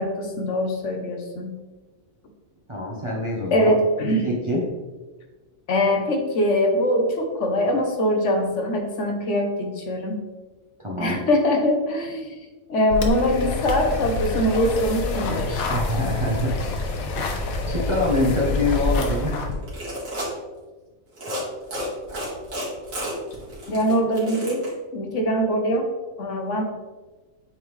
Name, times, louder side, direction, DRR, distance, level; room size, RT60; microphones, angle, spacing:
voice 1, 0.0-1.5 3.5-4.3 5.7-10.2 11.0-12.3 12.7-15.7 23.7-24.6 24.9-25.8 26.2-26.6, equal, 60° left, 3 dB, 1.1 m, -22 dB
voice 2, 2.7-3.7 4.2-4.7 10.8-11.2 15.7-16.6 17.1-19.5, left 1 dB, 25° right, -3 dB, 0.7 m, -25 dB
sound 1, 12.9-19.5, left 3 dB, 85° left, 1.2 m, -27 dB
sound 2, 19.5-20.3 21.1-21.4 21.7-24.7, equal, 70° right, 2.2 m, -31 dB
8.4 x 3.5 x 3.1 m, 1.2 s
omnidirectional pair, 1.5 m